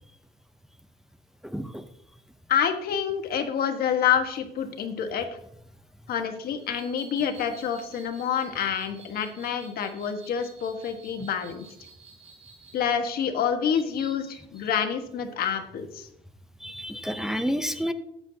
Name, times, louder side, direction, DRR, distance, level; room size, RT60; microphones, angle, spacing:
voice 1, 1.4-1.9 11.2-11.3 16.6-17.9, equal, 5° right, 8 dB, 0.6 m, -30 dB
voice 2, 2.5-5.3 6.1-11.6 12.7-16.1, left 8 dB, 65° left, 6 dB, 1.4 m, -27 dB
sound 1, 6.6-12.8, right 5 dB, 40° right, 3.4 m, -51 dB
13.0 x 8.7 x 2.8 m, 0.78 s
cardioid pair, 110°, 17 cm